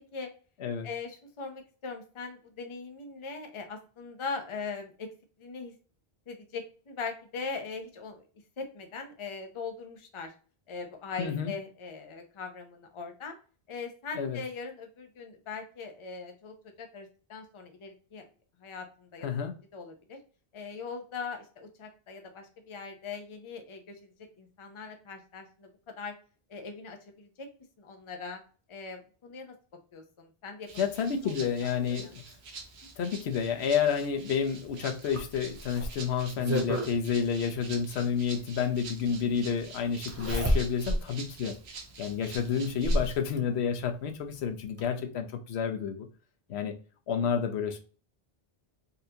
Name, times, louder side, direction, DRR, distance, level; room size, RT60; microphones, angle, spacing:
voice 1, 0.8-5.1 5.4-5.8 6.3-8.3 8.6-10.3 10.7-13.3 13.7-18.2 18.6-19.3 19.7-20.2 20.5-24.1 24.4-26.1 26.5-27.5 27.8-28.4 28.7-29.5 29.9-30.7 31.2-31.5 32.0-32.1, left 4 dB, 35° left, 0.6 m, -40 dB
voice 2, 11.2-11.5 14.2-14.4 19.2-19.5 30.8-32.2 33.0-41.6 42.0-46.1 46.5-46.8 47.1-47.8, left 7 dB, 85° left, 0.9 m, -30 dB
Rattle (instrument), 30.7-43.2, right 4 dB, 80° right, 1.0 m, -47 dB
Zipper (clothing), 35.1-36.9 38.4-38.5 40.1-41.1 41.5-41.6 42.3-43.2 44.4-44.5 44.8-44.9, equal, 20° right, 0.4 m, -29 dB
4.1 x 2.6 x 2.7 m
omnidirectional pair, 1.1 m